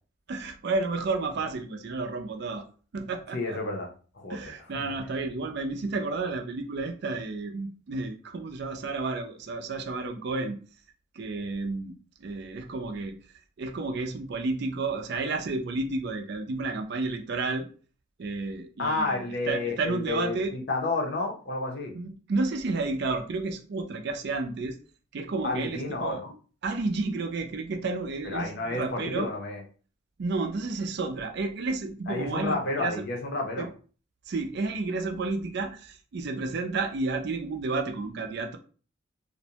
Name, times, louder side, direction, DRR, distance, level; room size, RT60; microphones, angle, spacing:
voice 1, 0.3-2.7 2.9-3.6 4.3-10.6 11.1-11.9 12.2-13.2 13.6-17.7 18.2-20.5 21.9-24.8 25.1-26.2 26.6-29.3 30.2-33.1 33.6-33.7 34.3-38.6, right 3 dB, 55° right, 6 dB, 0.4 m, -31 dB
voice 2, 3.3-3.9 4.1-4.5 4.8-4.9 18.8-21.9 25.4-26.3 28.2-29.6 32.1-33.7, left 3 dB, 55° left, 1 dB, 0.6 m, -31 dB
2.5 x 2.1 x 2.8 m, 0.39 s
head